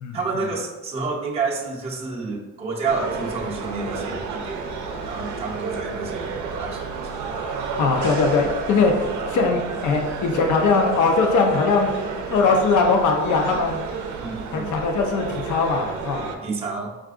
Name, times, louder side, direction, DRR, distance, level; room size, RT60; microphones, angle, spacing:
voice 1, 0.1-7.3 14.2-14.7 16.4-16.9, right 4 dB, 20° right, -3 dB, 0.6 m, -29 dB
sound 1, 2.9-16.4, right 5 dB, 75° right, 0.5 m, -31 dB
voice 2, 7.8-11.9 12.3-13.8 14.5-16.3, left 4 dB, 70° left, 2 dB, 0.7 m, -20 dB
4.5 x 2.4 x 2.5 m, 1.1 s
cardioid pair, 90°, 30 cm